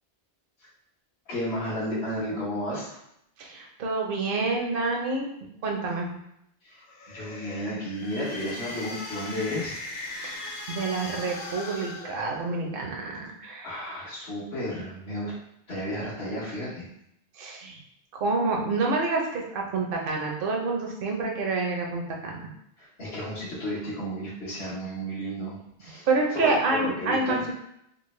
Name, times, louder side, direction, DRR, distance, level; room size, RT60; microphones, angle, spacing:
voice 1, 1.3-3.0 6.6-9.7 13.6-15.4 15.7-16.9 22.8-27.5, equal, 70° left, -8 dB, 1.2 m, -33 dB
voice 2, 3.4-5.3 5.6-6.1 10.2-13.7 17.4-17.8 18.1-22.5 26.1-27.5, right 3 dB, 60° right, 0 dB, 0.8 m, -28 dB
sound 1, 6.8-12.9, left 2 dB, 55° left, 0.5 m, -39 dB
3.8 x 2.1 x 3.1 m, 0.76 s
omnidirectional pair, 1.1 m